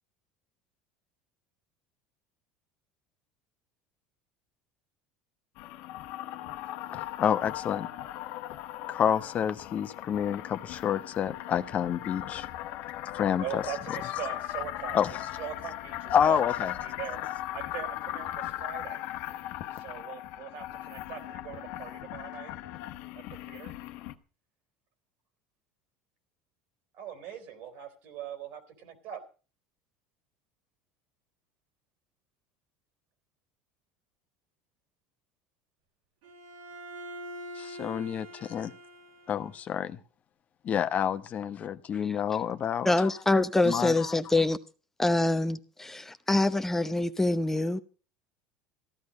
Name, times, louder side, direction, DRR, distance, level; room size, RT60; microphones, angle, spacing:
sound 1, 5.6-24.1, left 14 dB, 70° left, 1.2 m, -38 dB
voice 1, 6.9-7.9 8.9-12.5 13.1-13.6 14.9-15.1 16.1-16.7 37.6-38.7 39.3-40.0 40.6-42.9 43.6-44.1, left 8 dB, 40° left, 1.0 m, -28 dB
voice 2, 13.4-15.0 15.3-16.5 16.8-17.2 17.5-19.0 19.7-22.5 23.1-23.7 26.9-29.2, right 9 dB, 65° right, 3.8 m, -41 dB
Bowed string instrument, 36.2-39.7, equal, 80° right, 4.6 m, -44 dB
voice 3, 42.8-44.6 45.0-47.8, left 2 dB, 10° left, 0.8 m, -25 dB
15.0 x 11.5 x 5.2 m
supercardioid pair, 100°, 4 cm